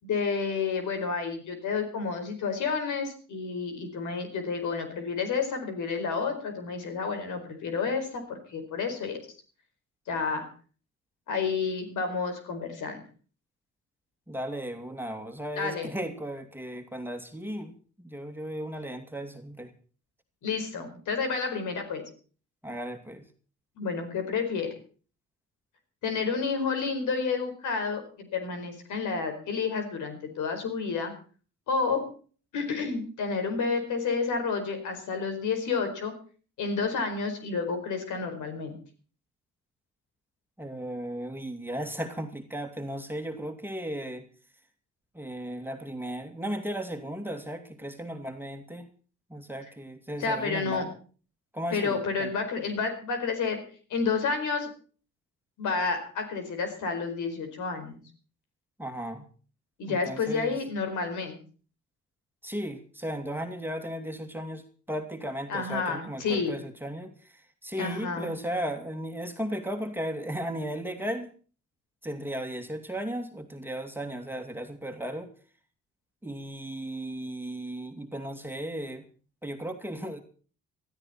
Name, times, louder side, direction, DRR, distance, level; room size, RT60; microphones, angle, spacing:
voice 1, 0.0-9.2 10.1-10.5 11.3-13.0 15.6-15.9 20.4-22.0 23.8-24.8 26.0-31.1 31.7-32.1 32.5-36.1 36.6-38.7 50.2-50.9 51.7-53.6 53.9-54.7 55.6-58.0 59.8-61.4 65.5-66.6 67.8-68.3, left 5 dB, 75° left, 6 dB, 4.7 m, -30 dB
voice 2, 14.3-19.7 22.6-23.2 40.6-44.2 45.1-48.9 49.3-50.9 51.5-52.3 58.8-59.2 59.9-60.6 62.4-64.6 64.9-71.3 72.0-75.3 76.2-79.0 79.4-80.2, right 1 dB, 5° right, 5 dB, 2.5 m, -35 dB
20.0 x 13.5 x 4.3 m, 0.40 s
cardioid pair, 90°, 30 cm